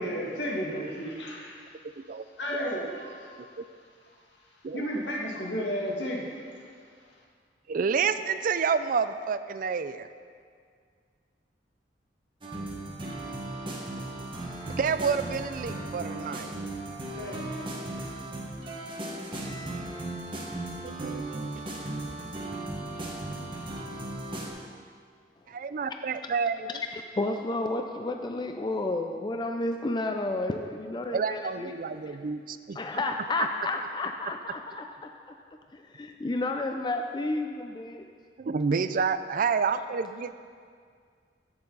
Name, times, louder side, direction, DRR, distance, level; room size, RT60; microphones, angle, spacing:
voice 1, 0.0-1.7 2.4-3.4 4.1-4.2 4.7-6.7 17.2-17.4 17.9-18.2, equal, 75° left, -2 dB, 1.9 m, -33 dB
voice 2, 7.7-10.1 14.8-16.5 20.8-21.6 25.5-26.7 31.1-32.8 38.4-40.3, right 5 dB, 50° right, 12 dB, 0.4 m, -29 dB
sound 1, 12.4-24.5, right 2 dB, 30° right, 1.5 m, -36 dB
voice 3, 26.9-32.2 32.7-35.1 35.7-38.1, left 2 dB, 25° left, 4 dB, 0.4 m, -31 dB
15.0 x 7.0 x 4.0 m, 2.1 s
head